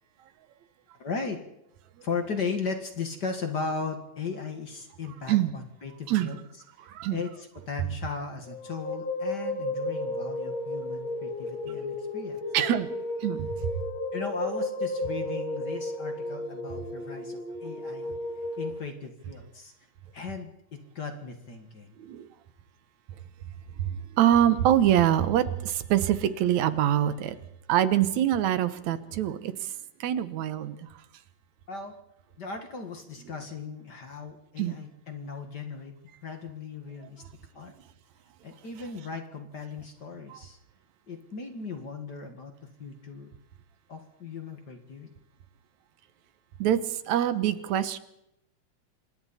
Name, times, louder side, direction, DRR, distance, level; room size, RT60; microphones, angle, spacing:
voice 1, 1.0-1.4 2.0-6.4 7.1-12.4 14.1-18.1 18.6-19.7 20.1-22.0 31.7-32.0 32.4-35.9 36.2-37.2 37.5-37.7 38.4-40.6 41.1-43.3 43.9-45.1, left 4 dB, 40° left, 5 dB, 2.0 m, -37 dB
voice 2, 6.9-7.2 12.5-12.9 13.2-13.5 22.0-22.3 23.8-27.4 27.7-29.5 30.0-30.8 34.6-34.7 40.3-40.4 46.6-48.0, right 11 dB, 75° right, 13 dB, 2.3 m, -24 dB
sound 1, 8.5-18.7, left 1 dB, 60° left, 6.6 m, -33 dB
26.5 x 24.0 x 4.2 m, 0.82 s
omnidirectional pair, 3.4 m